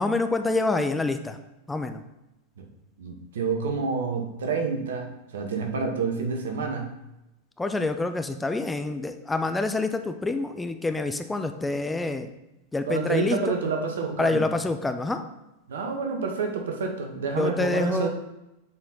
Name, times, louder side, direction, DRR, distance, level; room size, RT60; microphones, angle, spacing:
voice 1, 0.0-1.4 1.7-2.0 7.6-12.3 12.7-13.6 14.2-15.2 17.4-18.1, left 3 dB, 10° left, 7 dB, 0.4 m, -27 dB
voice 2, 3.0-6.9 12.9-14.5 15.7-18.1, right 5 dB, 60° right, 3 dB, 1.0 m, -28 dB
7.2 x 4.2 x 4.0 m, 0.95 s
figure-of-eight pair, 90°, 0 cm